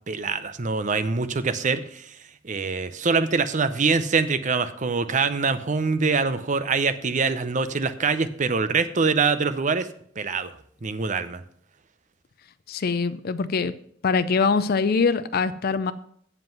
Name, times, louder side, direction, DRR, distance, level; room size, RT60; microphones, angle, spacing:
voice 1, 0.1-2.2 2.4-9.9 10.2-10.5 10.8-11.4, right 4 dB, 40° right, 11 dB, 0.6 m, -24 dB
voice 2, 12.7-13.7 14.0-15.9, left 4 dB, 50° left, 12 dB, 0.4 m, -23 dB
7.8 x 7.6 x 5.9 m, 0.65 s
head